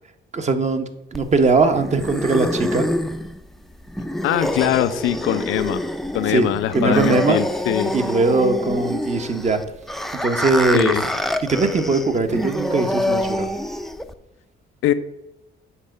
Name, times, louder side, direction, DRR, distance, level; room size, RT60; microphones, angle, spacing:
voice 1, 0.3-2.9 6.3-6.5 6.7-7.4 7.9-9.6 10.2-11.0 11.4-13.5, right 3 dB, 35° right, 8 dB, 0.9 m, -20 dB
sound 1, 1.1-14.1, left 1 dB, ahead, 0.5 m, -26 dB
voice 2, 4.2-5.8 6.1-7.9 10.7-11.0 14.8-14.9, left 11 dB, 85° left, 12 dB, 0.5 m, -22 dB
7.3 x 3.8 x 6.5 m, 0.89 s
cardioid pair, 90°, 20 cm